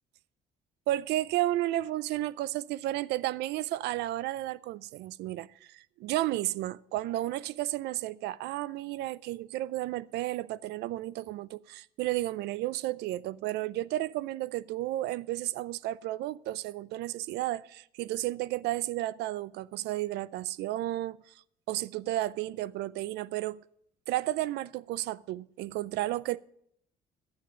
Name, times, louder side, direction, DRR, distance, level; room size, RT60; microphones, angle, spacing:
voice 1, 0.9-21.2 21.7-23.6 24.1-26.4, right 15 dB, 80° right, 0.5 m, -32 dB
10.5 x 9.0 x 6.2 m
cardioid pair, 110°, 17 cm